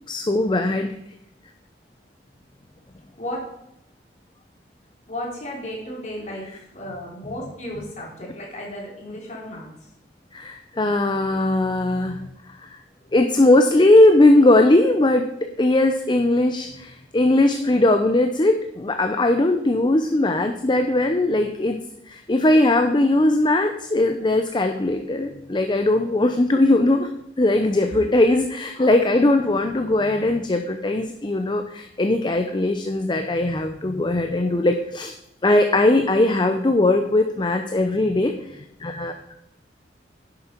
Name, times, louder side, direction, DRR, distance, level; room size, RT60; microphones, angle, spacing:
voice 1, 0.1-0.9 10.3-12.2 12.6-12.8 13.1-21.8 22.1-27.1 27.4-35.1 35.4-39.1, left 2 dB, 25° left, 6 dB, 0.6 m, -19 dB
voice 2, 5.1-9.9 13.0-13.1 27.6-28.0 28.7-29.0 38.8-38.9, left 1 dB, 40° left, -2 dB, 3.4 m, -35 dB
11.0 x 7.7 x 4.5 m, 0.79 s
head